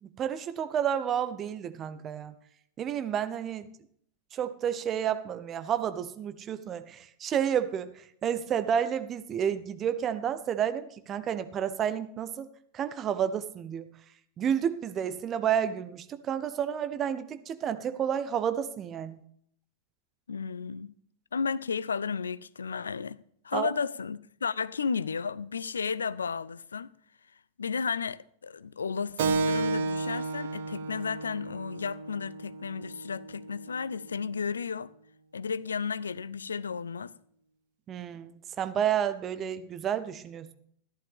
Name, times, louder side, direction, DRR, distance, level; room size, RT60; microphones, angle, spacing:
voice 1, 0.0-2.3 2.8-3.7 4.3-12.5 12.7-13.9 14.4-19.2 23.5-23.7 37.9-40.5, right 9 dB, 30° right, 0.9 m, -30 dB
voice 2, 20.3-20.9 21.3-23.2 23.4-26.9 27.6-34.9 35.3-37.1, left 5 dB, 70° left, 0.4 m, -33 dB
Keyboard (musical), 29.2-34.3, right 3 dB, 55° right, 0.9 m, -33 dB
14.0 x 11.5 x 3.6 m
figure-of-eight pair, 90°, 0 cm